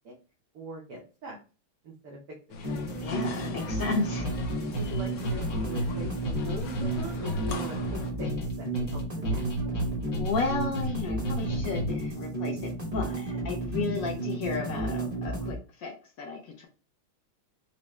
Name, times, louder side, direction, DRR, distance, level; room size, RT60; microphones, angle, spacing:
voice 1, 0.5-1.4 1.8-2.2 2.5-2.6 3.5-3.7 4.7-7.8 8.2-8.3 8.6-9.6 13.8-14.2, right 1 dB, 65° right, -2 dB, 1.0 m, -41 dB
sound 1, 2.5-8.1, left 3 dB, 70° left, 1.2 m, -41 dB
sound 2, 2.6-15.6, right 2 dB, 35° right, 0.6 m, -33 dB
voice 2, 3.0-4.3 10.2-16.7, left 4 dB, 90° left, 1 dB, 0.7 m, -33 dB
sound 3, 4.2-12.2, right 1 dB, 50° left, 1.0 m, -33 dB
4.7 x 2.0 x 3.0 m, 0.35 s
omnidirectional pair, 2.3 m